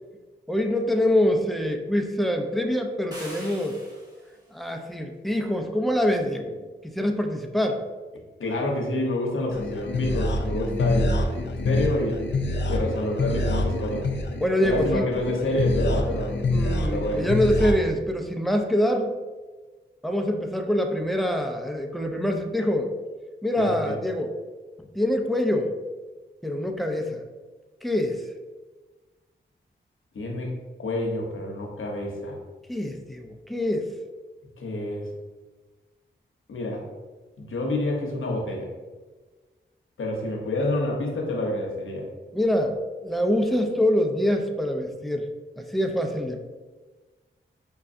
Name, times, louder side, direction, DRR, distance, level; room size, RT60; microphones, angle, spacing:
voice 1, 0.5-3.8 4.5-7.8 14.4-15.1 16.5-19.2 20.0-22.9 23.4-24.4 24.9-25.7 26.4-27.2 27.8-28.2 32.7-33.9 42.3-42.7 43.0-45.3 45.6-46.4, left 1 dB, ahead, 4 dB, 0.5 m, -25 dB
sound 1, 3.1-4.4, right 1 dB, 20° right, 1.4 m, -43 dB
voice 2, 8.4-12.2 12.7-14.1 14.6-16.4 16.9-17.3 23.6-23.9 30.1-30.5 30.8-32.3 34.6-35.1 36.5-36.8 37.4-38.7 40.0-42.1, left 1 dB, 75° left, 0 dB, 0.8 m, -28 dB
sound 2, 9.5-17.7, left 2 dB, 60° left, 0.5 m, -26 dB
5.3 x 2.3 x 2.5 m, 1.3 s
cardioid pair, 40°, 21 cm